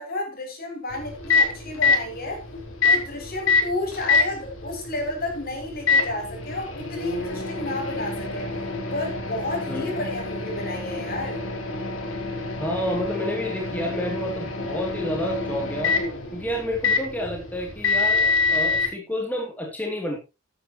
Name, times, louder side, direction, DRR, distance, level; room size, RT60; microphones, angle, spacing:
voice 1, 0.0-2.4 2.8-8.5 8.9-11.4, left 2 dB, 50° left, 6.4 m, -31 dB
Microwave oven, 0.9-18.9, left 4 dB, 85° left, 4.5 m, -26 dB
voice 2, 12.5-15.9 16.3-20.2, equal, 10° left, 2.8 m, -29 dB
15.5 x 10.5 x 3.1 m
head